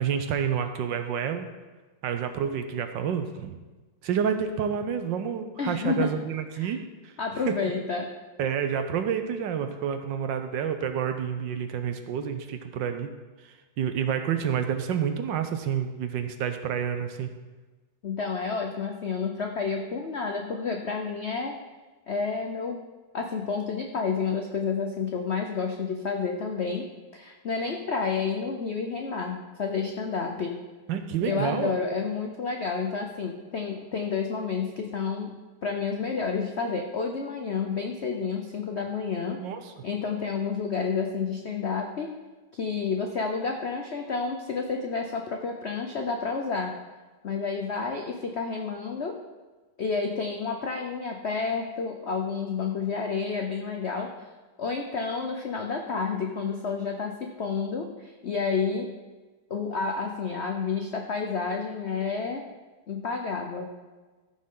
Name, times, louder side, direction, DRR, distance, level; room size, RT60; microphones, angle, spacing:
voice 1, 0.0-1.5 2.0-3.6 4.0-7.1 7.5-7.6 8.4-13.1 13.4-17.3 30.9-31.7 39.4-39.7, right 8 dB, 70° right, 8 dB, 1.4 m, -29 dB
voice 2, 5.6-6.1 6.6-6.7 7.2-8.1 18.0-21.6 22.1-22.8 23.1-26.9 27.1-30.5 31.2-35.3 35.6-39.4 39.8-42.1 42.5-46.7 47.2-49.1 49.8-54.1 54.6-58.9 59.5-62.4 62.9-63.7, left 5 dB, 75° left, 3 dB, 0.6 m, -30 dB
14.0 x 6.4 x 3.8 m, 1.3 s
omnidirectional pair, 2.2 m